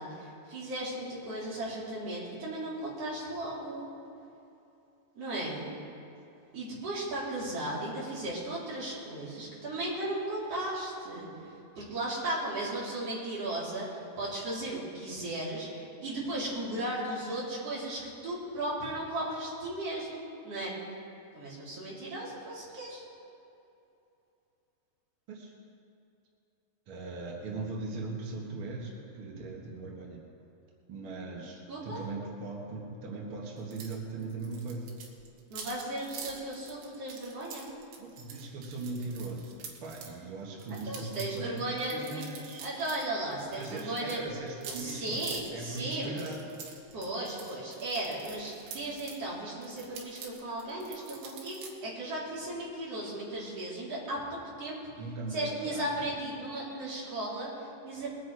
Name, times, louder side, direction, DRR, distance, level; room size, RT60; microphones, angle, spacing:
voice 1, 0.0-3.9 5.2-5.7 6.5-20.7 21.3-23.0 31.7-32.0 35.5-37.7 40.8-42.2 42.6-44.4 44.7-46.4 46.9-54.2 54.6-54.8 55.3-58.1, right 1 dB, 35° right, -7 dB, 4.0 m, -36 dB
voice 2, 26.9-30.2 30.9-31.6 31.8-35.0 38.0-42.8 43.5-46.4 55.0-55.9, right 3 dB, 65° right, -2 dB, 1.3 m, -39 dB
sound 1, 33.7-34.0 34.2-40.1 40.6-43.1 43.3-49.2 49.6-51.7, right 6 dB, 85° right, 3.7 m, -46 dB
21.0 x 9.3 x 4.8 m, 2.8 s
omnidirectional pair, 4.9 m